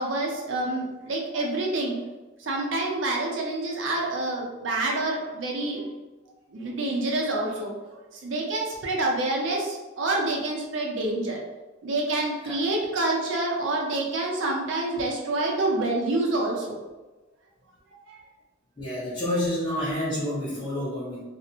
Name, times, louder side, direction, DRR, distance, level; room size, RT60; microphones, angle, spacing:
voice 1, 0.0-2.0 2.4-5.8 6.5-11.4 11.8-16.8 17.9-18.2, right 2 dB, 75° right, -1 dB, 0.5 m, -27 dB
voice 2, 18.8-21.2, left 1 dB, 25° left, -12 dB, 0.7 m, -29 dB
2.5 x 2.1 x 2.7 m, 1.1 s
head